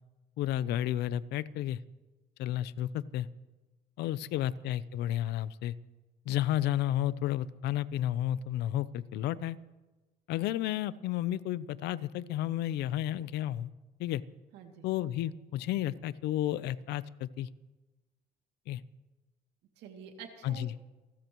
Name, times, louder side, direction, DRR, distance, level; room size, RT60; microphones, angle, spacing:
voice 1, 0.4-1.8 2.4-3.3 4.0-5.7 6.3-9.6 10.3-13.7 14.0-14.2 14.8-17.5 18.7-18.8 20.4-20.7, left 12 dB, 80° left, 17 dB, 0.6 m, -32 dB
voice 2, 14.5-14.9 19.8-20.8, right 7 dB, 85° right, 3 dB, 2.5 m, -48 dB
29.0 x 13.5 x 3.1 m, 1.2 s
cardioid pair, 110°, 17 cm